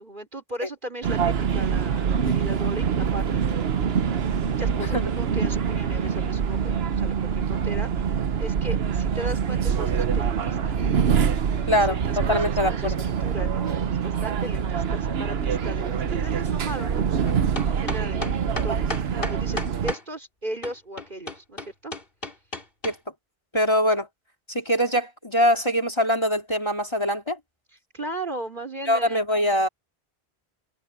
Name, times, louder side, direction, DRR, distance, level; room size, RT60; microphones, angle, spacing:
voice 1, 0.0-10.9 11.5-21.9 27.9-29.2, right 1 dB, 50° right, 4.5 m, -37 dB
sound 1, 1.0-19.9, right 7 dB, 70° right, 1.1 m, -25 dB
voice 2, 11.7-12.0 12.3-12.9 22.8-23.0 23.5-24.1 24.5-27.4 28.9-29.7, equal, 25° left, 3.2 m, -23 dB
sound 2, 17.2-20.0 20.6-22.9, left 2 dB, 60° left, 3.7 m, -33 dB
omnidirectional pair, 1.1 m